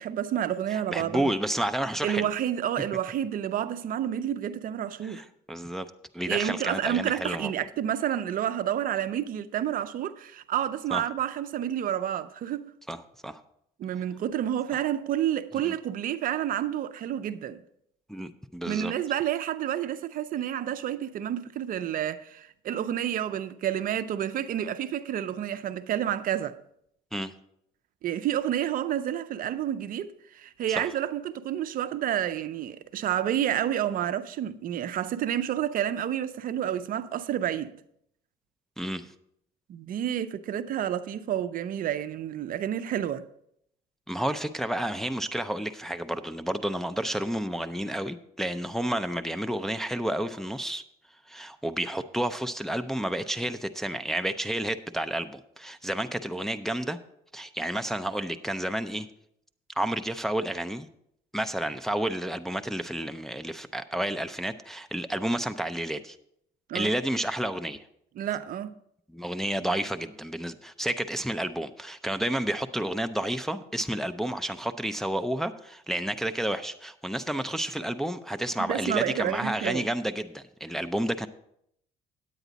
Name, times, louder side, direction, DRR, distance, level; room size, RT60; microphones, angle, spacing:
voice 1, 0.0-1.3 2.0-5.2 6.3-12.7 13.8-17.6 18.7-26.6 28.0-37.7 39.7-43.3 66.7-66.9 68.2-68.7 78.6-79.9, right 10 dB, 55° right, 0.5 m, -29 dB
voice 2, 0.7-2.3 5.0-5.9 6.1-7.5 10.9-11.0 12.9-13.4 15.6-15.8 18.1-18.9 27.1-27.3 30.8-30.9 38.8-39.1 44.1-50.8 51.3-57.0 57.3-59.1 59.8-60.9 61.3-66.2 66.7-67.8 69.1-81.3, right 1 dB, ahead, 0.5 m, -30 dB
9.3 x 9.1 x 4.0 m
cardioid pair, 110°, 17 cm